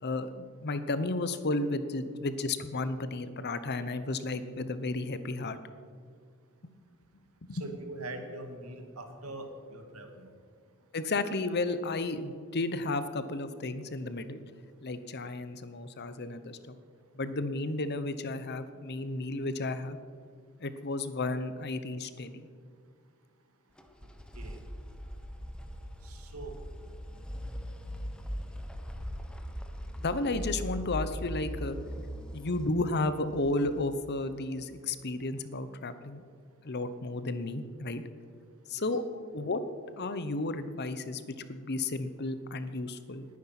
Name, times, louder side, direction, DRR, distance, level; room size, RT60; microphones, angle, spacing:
voice 1, 0.0-5.6 7.4-7.7 10.9-14.4 14.8-16.7 17.1-20.0 20.6-22.5 30.0-31.8 32.3-36.2 36.6-38.0 38.7-39.6 40.0-41.2 41.5-43.3, left 2 dB, 50° left, 12 dB, 0.9 m, -33 dB
voice 2, 7.6-10.3 24.4-24.6 26.0-26.6 38.8-38.9, right 2 dB, 75° right, 5 dB, 2.2 m, -42 dB
sound 1, 23.8-34.6, equal, 5° left, 1.1 m, -40 dB
19.5 x 9.7 x 6.0 m, 2.1 s
head